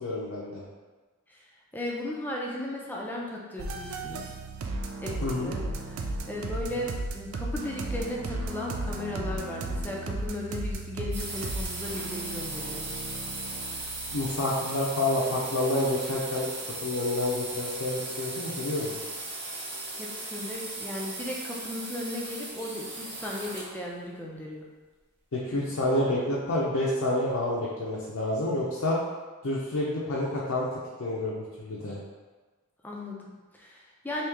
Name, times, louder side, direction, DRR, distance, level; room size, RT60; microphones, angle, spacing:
voice 1, 0.0-0.6 5.2-5.5 6.8-6.9 14.1-16.5 16.8-19.0 25.3-29.0 29.4-32.0, left 1 dB, 90° left, -6 dB, 0.6 m, -29 dB
voice 2, 1.7-4.3 5.0-6.0 6.3-12.8 20.0-24.7 32.8-34.3, left 1 dB, 10° left, -3 dB, 0.5 m, -36 dB
sound 1, 3.6-14.3, right 2 dB, 75° right, 0.4 m, -35 dB
sound 2, 11.1-23.8, right 2 dB, 55° right, 0.8 m, -37 dB
3.0 x 2.8 x 3.4 m, 1.3 s
head